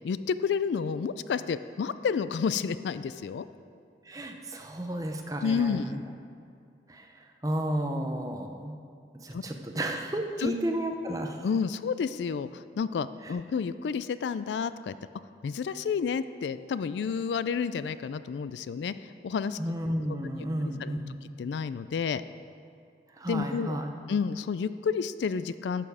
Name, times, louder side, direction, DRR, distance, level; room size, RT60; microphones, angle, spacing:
voice 1, 0.0-3.5 5.4-6.0 9.3-9.4 10.4-10.5 11.4-15.0 15.4-18.9 19.2-19.6 20.8-20.9 21.4-22.2 23.3-23.8 24.1-25.9, left 6 dB, 80° left, 14 dB, 0.3 m, -30 dB
voice 2, 4.1-6.0 6.9-7.1 7.4-8.8 9.1-11.5 13.2-13.4 19.6-21.2 23.1-23.9, right 1 dB, 20° right, 4 dB, 0.6 m, -32 dB
11.5 x 6.9 x 4.9 m, 2.3 s
head